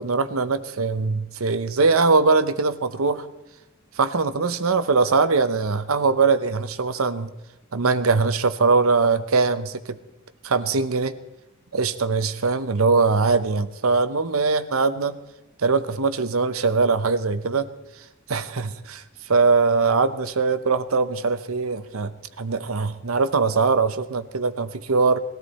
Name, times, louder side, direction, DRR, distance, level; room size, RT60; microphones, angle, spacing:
voice 1, 0.0-3.3 4.0-7.3 7.7-10.0 10.4-11.1 11.7-15.2 15.6-17.7 18.3-25.2, right 4 dB, 85° right, 13 dB, 0.8 m, -21 dB
20.5 x 13.0 x 4.2 m, 0.98 s
head